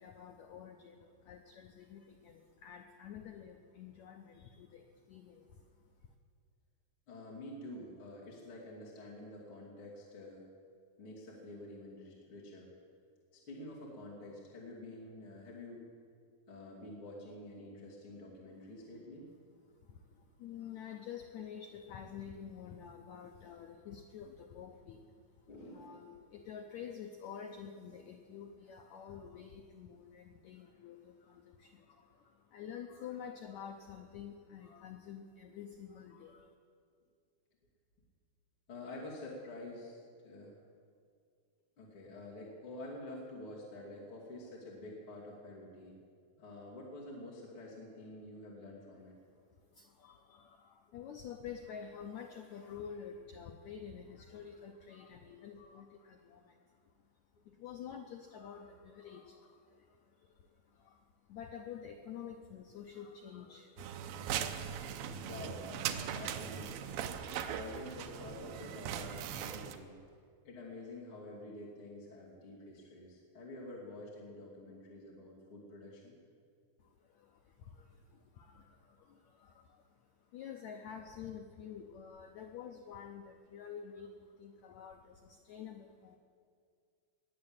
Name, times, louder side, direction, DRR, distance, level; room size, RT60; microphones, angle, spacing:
voice 1, 0.0-6.1 19.7-36.5 49.7-56.9 57.4-64.1 76.8-86.2, left 8 dB, 80° left, 4 dB, 1.6 m, -49 dB
voice 2, 7.1-10.5 11.0-12.7 13.3-15.9 16.5-19.3 25.5-26.0 38.7-40.6 41.8-46.0 46.4-49.1 57.5-57.6 65.2-70.0 70.4-76.1, left 1 dB, 40° left, -5 dB, 3.2 m, -48 dB
sound 1, 63.8-69.8, right 9 dB, 85° right, 2.5 m, -40 dB
20.5 x 7.5 x 8.9 m, 2.2 s
omnidirectional pair, 4.1 m